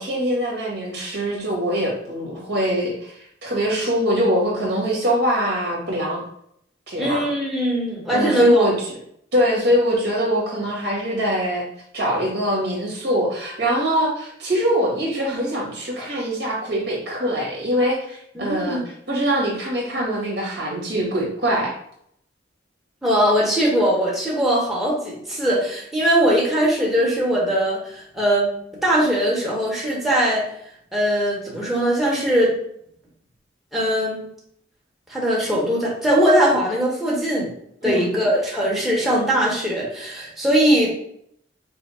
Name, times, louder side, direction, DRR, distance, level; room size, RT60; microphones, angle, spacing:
voice 1, 0.0-6.2 6.9-7.3 8.1-8.7 9.3-11.6 11.9-18.8 19.1-21.7 37.8-38.1, equal, 60° right, -3 dB, 1.8 m, -23 dB
voice 2, 7.0-8.7 18.3-18.8 23.0-28.5 28.8-30.4 30.9-32.6 33.7-34.2 35.1-37.5 37.8-40.9, equal, ahead, -5 dB, 1.1 m, -20 dB
5.6 x 2.1 x 4.3 m, 0.70 s
head